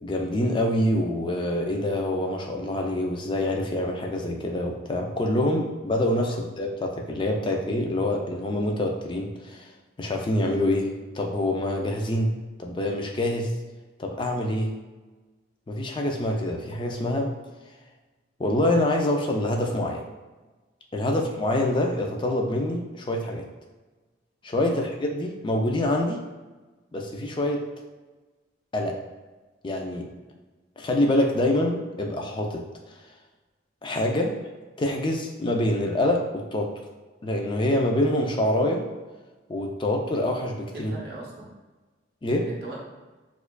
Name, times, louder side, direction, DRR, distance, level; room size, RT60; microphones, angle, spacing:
voice 1, 0.0-9.7 10.0-12.3 12.6-13.5 14.0-14.7 15.7-17.3 18.4-20.0 20.9-23.4 24.4-26.2 26.9-27.6 28.7-29.0 29.6-30.1 30.8-32.6 33.8-34.4 34.8-36.7 37.2-38.8 39.5-40.9 42.2-42.5, left 1 dB, 25° left, 2 dB, 0.3 m, -26 dB
voice 2, 40.7-41.5 42.4-42.8, right 2 dB, 55° right, -3 dB, 0.7 m, -39 dB
4.5 x 2.4 x 2.2 m, 1.2 s
head